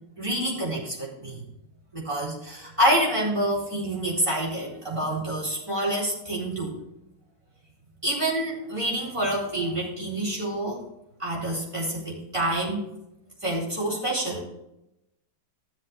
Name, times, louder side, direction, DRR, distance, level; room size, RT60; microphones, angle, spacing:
voice 1, 0.2-1.4 1.9-6.8 8.0-10.8 11.2-12.8 13.4-14.4, right 1 dB, 15° right, -5 dB, 4.0 m, -27 dB
14.0 x 7.5 x 3.5 m, 0.86 s
omnidirectional pair, 2.0 m